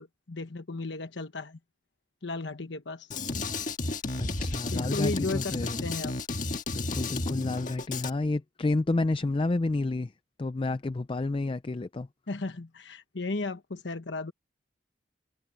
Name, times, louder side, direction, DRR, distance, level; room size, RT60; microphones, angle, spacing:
voice 1, 0.0-1.6 2.2-3.1 4.7-6.1 12.3-14.3, left 3 dB, 70° left, 1.1 m, -35 dB
Drum kit, 3.1-8.1, left 2 dB, 45° left, 1.6 m, -32 dB
voice 2, 4.2-5.9 6.7-10.1 10.4-12.1, left 2 dB, 30° left, 0.4 m, -30 dB
head